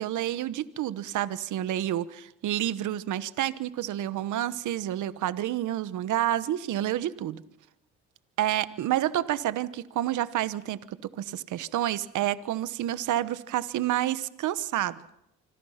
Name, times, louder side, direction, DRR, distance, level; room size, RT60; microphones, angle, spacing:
voice 1, 0.0-7.4 8.4-15.0, right 12 dB, 80° right, 15 dB, 1.1 m, -29 dB
26.0 x 25.5 x 5.8 m, 0.81 s
cardioid pair, 90°, 30 cm